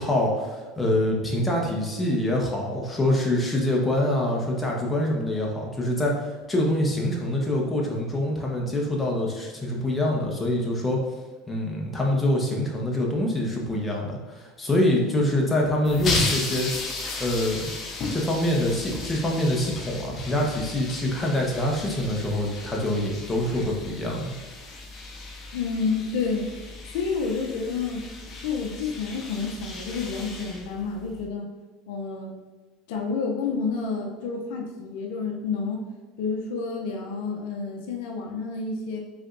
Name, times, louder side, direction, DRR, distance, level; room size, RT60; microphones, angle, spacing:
voice 1, 0.0-11.0 11.5-16.7 17.2-17.6 18.1-24.3, left 1 dB, 15° left, -1 dB, 1.2 m, -25 dB
sound 1, 15.8-31.2, left 3 dB, 40° left, 0.9 m, -35 dB
voice 2, 25.5-26.5 26.9-28.1 28.4-31.5 31.9-32.3 32.9-35.9 36.2-39.0, left 4 dB, 75° left, 2 dB, 0.6 m, -29 dB
5.0 x 3.8 x 2.6 m, 1.3 s
supercardioid pair, 95°, 0 cm